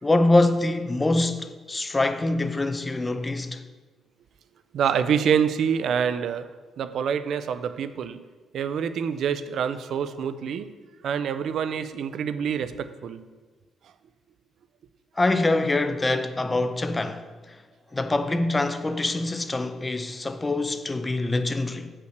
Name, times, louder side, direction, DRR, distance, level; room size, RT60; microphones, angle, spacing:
voice 1, 0.0-3.6 15.2-17.6 17.9-21.9, left 2 dB, 20° left, 0.6 m, -24 dB
voice 2, 4.7-6.5 6.8-8.2 8.5-10.7 11.0-13.2, right 7 dB, 70° right, 0.5 m, -26 dB
8.0 x 5.6 x 6.5 m
cardioid pair, 100°, 0 cm